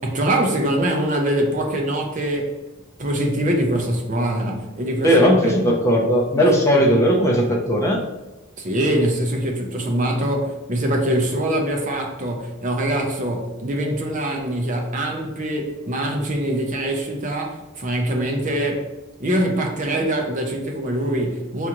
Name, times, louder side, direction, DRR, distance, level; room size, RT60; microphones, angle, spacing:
voice 1, 0.0-2.6 3.0-5.5 6.3-6.4 8.6-18.9 19.2-21.7, right 1 dB, 40° right, 2 dB, 0.6 m, -23 dB
voice 2, 5.0-8.0, equal, 15° left, -1 dB, 0.6 m, -17 dB
5.6 x 2.5 x 2.9 m, 1.0 s
head